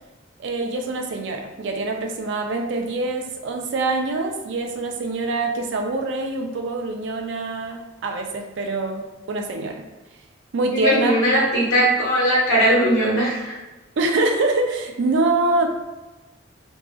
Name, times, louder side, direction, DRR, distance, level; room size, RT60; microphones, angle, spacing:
voice 1, 0.4-9.9 10.5-11.1 14.0-15.7, right 2 dB, 60° right, 3 dB, 0.4 m, -24 dB
voice 2, 10.7-13.5, equal, 90° left, -6 dB, 1.2 m, -19 dB
2.7 x 2.4 x 2.3 m, 1.1 s
head